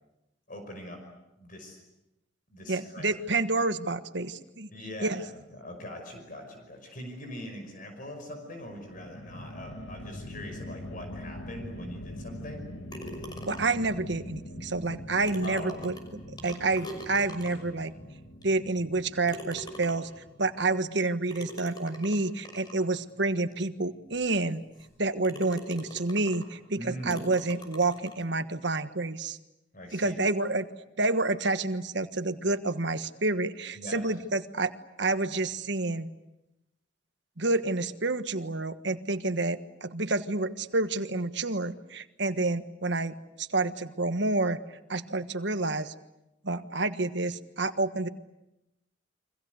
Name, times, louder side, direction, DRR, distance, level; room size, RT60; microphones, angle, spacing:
voice 1, 0.5-1.0 1.4-1.8 2.5-3.2 4.7-5.2 5.5-12.6 15.4-16.0 26.8-27.2 29.7-30.2 33.7-34.0, left 1 dB, 45° left, 4 dB, 5.5 m, -42 dB
voice 2, 2.7-4.7 5.0-5.2 13.5-15.9 16.4-17.9 18.4-20.1 20.4-24.6 25.0-29.4 29.9-30.7 31.0-34.7 35.0-36.1 37.4-44.6 44.9-45.9 46.4-48.1, right 2 dB, 65° right, 10 dB, 1.4 m, -29 dB
sound 1, 8.7-21.0, left 1 dB, 75° left, 2.4 m, -43 dB
sound 2, 12.9-13.9 14.9-15.0 15.3-17.8 18.4-18.5 19.3-20.2 21.3-22.8 23.5-23.6 24.1-24.2 24.8-24.9 25.2-26.5 27.1-28.2, equal, 25° left, 6.0 m, -43 dB
29.5 x 24.5 x 8.1 m, 0.92 s
head